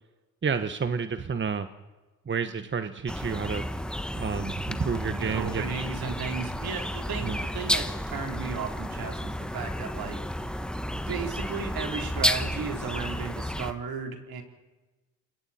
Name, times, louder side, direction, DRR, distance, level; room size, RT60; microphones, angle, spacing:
voice 1, 0.4-1.7 2.3-3.7 4.1-5.6 7.2-7.4, right 6 dB, 30° right, 10 dB, 1.1 m, -30 dB
sound 1, 3.1-13.7, equal, ahead, 1.2 m, -32 dB
voice 2, 5.2-10.2 11.1-14.4, right 5 dB, 60° right, 4 dB, 3.6 m, -35 dB
28.0 x 22.0 x 4.3 m, 1.2 s
supercardioid pair, 65°, 41 cm